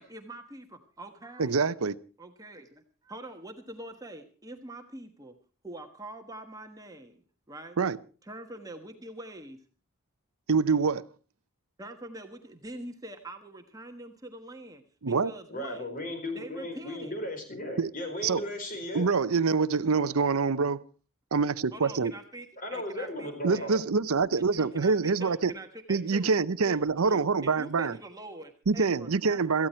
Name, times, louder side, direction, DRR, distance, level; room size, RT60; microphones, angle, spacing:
voice 1, 0.0-1.6 2.2-5.3 5.6-7.2 7.5-7.8 8.2-9.6 11.8-15.9 16.3-17.1 21.7-23.7 24.3-26.3 26.7-29.7, right 1 dB, 15° right, 1.3 m, -44 dB
voice 2, 1.4-2.0 7.8-8.0 10.5-11.0 15.0-15.3 17.8-17.9 18.2-18.4 18.9-20.8 21.3-22.1 23.4-25.5 25.9-27.9 28.7-29.7, right 4 dB, 80° right, 0.7 m, -25 dB
voice 3, 15.5-19.1 22.6-23.8, left 1 dB, 40° left, 4.5 m, -36 dB
17.5 x 14.5 x 4.4 m
head